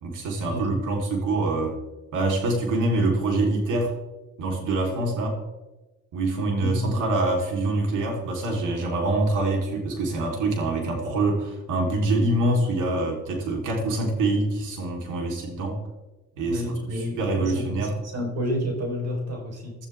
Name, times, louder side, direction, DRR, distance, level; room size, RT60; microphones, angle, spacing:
voice 1, 0.0-1.8 2.1-3.9 4.4-5.4 6.1-15.8 16.4-18.0, right 2 dB, 85° right, 1 dB, 3.9 m, -25 dB
voice 2, 6.5-7.0 16.5-19.8, equal, 55° right, 1 dB, 4.4 m, -30 dB
16.5 x 12.5 x 3.6 m, 1.1 s
cardioid pair, 90°, 30 cm